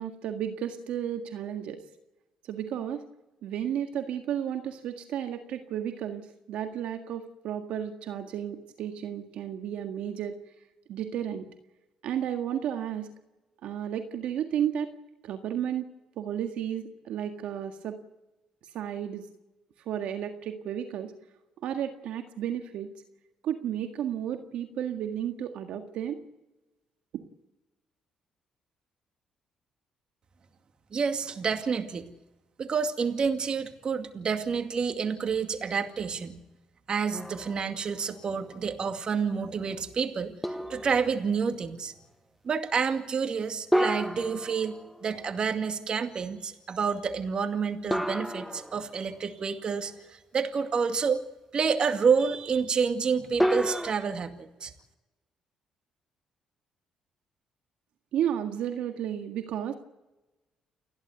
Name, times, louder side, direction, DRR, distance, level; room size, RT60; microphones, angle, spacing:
voice 1, 0.0-1.8 2.5-3.1 3.4-10.3 10.9-11.5 12.0-13.1 13.6-14.9 15.2-15.9 16.2-18.0 18.7-19.3 19.9-21.1 21.6-22.9 23.4-26.2 58.1-59.7, right 9 dB, 75° right, 6 dB, 1.7 m, -33 dB
voice 2, 30.9-32.1 32.6-36.4 36.9-41.9 42.4-44.7 45.0-51.2 51.5-54.7, right 6 dB, 50° right, 7 dB, 2.3 m, -29 dB
sound 1, 37.1-38.0 38.5-38.6 40.4-41.3 43.7-45.3 47.9-49.2 53.4-53.9, equal, 5° left, 1.1 m, -30 dB
30.0 x 11.5 x 8.0 m, 1.0 s
supercardioid pair, 65°, 2 cm